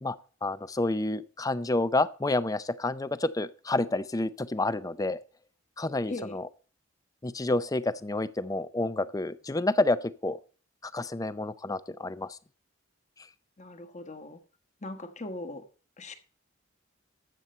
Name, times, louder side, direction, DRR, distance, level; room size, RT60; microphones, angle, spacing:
voice 1, 0.0-5.2 5.8-6.5 7.2-10.0 10.2-10.4 10.8-12.4, left 2 dB, 15° left, 0.5 m, -29 dB
voice 2, 13.6-14.4 14.8-15.6 16.0-16.1, left 2 dB, 35° left, 1.3 m, -39 dB
13.0 x 8.2 x 4.3 m
head